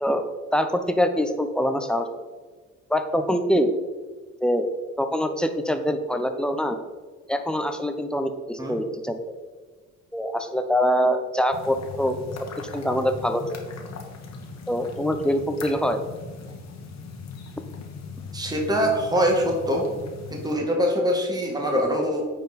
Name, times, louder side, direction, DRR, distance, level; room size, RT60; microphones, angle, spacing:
voice 1, 0.0-2.1 2.9-3.7 4.4-4.7 5.0-6.8 7.3-9.2 10.1-12.2 12.7-13.6 14.7-16.0, equal, 5° left, 7 dB, 0.8 m, -24 dB
sound 1, 11.5-20.6, left 4 dB, 65° left, 1.5 m, -39 dB
voice 2, 18.3-19.9 20.3-22.3, equal, 15° right, 0 dB, 1.6 m, -23 dB
9.2 x 4.6 x 4.2 m, 1.4 s
cardioid pair, 90°, 30 cm